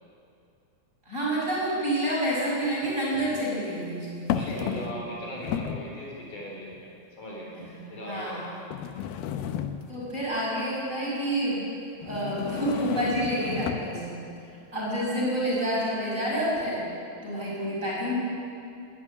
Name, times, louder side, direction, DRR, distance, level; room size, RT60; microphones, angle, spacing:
voice 1, 1.0-5.0 7.5-8.4 9.9-11.7 12.0-14.2 14.7-16.8 17.2-18.1, right 1 dB, 20° right, -5 dB, 6.5 m, -29 dB
sound 1, 1.3-1.4 2.8-3.4 4.3-5.1 5.4-5.9 6.7-6.8 7.6-7.7 8.7-10.1 12.0-14.0, left 9 dB, 90° left, 2.7 m, -32 dB
voice 2, 4.3-6.9 7.2-8.4, equal, 55° left, -3 dB, 5.5 m, -39 dB
20.5 x 13.0 x 9.9 m, 2.5 s
omnidirectional pair, 4.2 m